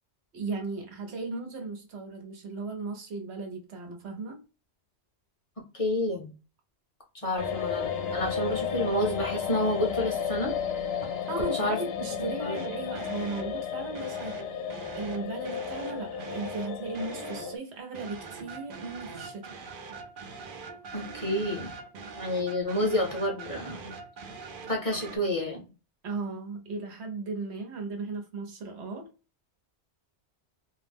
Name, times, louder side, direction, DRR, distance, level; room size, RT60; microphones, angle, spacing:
voice 1, 0.3-4.4 11.3-19.5 26.0-29.1, right 3 dB, 80° right, 1.0 m, -36 dB
voice 2, 5.7-6.3 7.2-10.5 11.6-11.8 12.4-12.6 20.9-21.7 22.2-23.9 24.7-25.6, left 1 dB, 35° left, 0.7 m, -29 dB
sound 1, 7.4-17.6, left 7 dB, 70° left, 0.8 m, -33 dB
sound 2, 12.5-13.6 13.9-17.6 17.9-25.2, right 4 dB, 60° right, 0.7 m, -43 dB
2.4 x 2.0 x 3.3 m
omnidirectional pair, 1.1 m